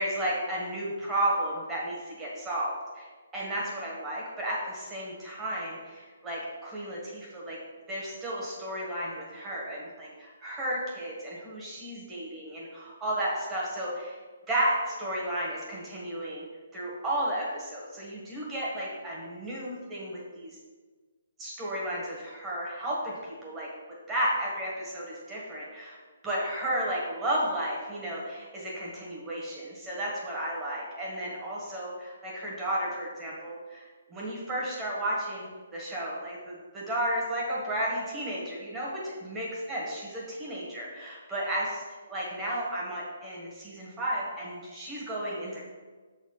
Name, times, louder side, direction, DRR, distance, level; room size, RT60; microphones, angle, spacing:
voice 1, 0.0-3.1 3.3-7.6 7.9-14.2 14.5-16.4 16.7-20.6 21.4-23.7 24.1-26.0 26.2-33.8 34.1-45.6, right 1 dB, 10° right, -5 dB, 1.6 m, -33 dB
7.4 x 4.3 x 5.5 m, 1.4 s
hypercardioid pair, 175°, 0 cm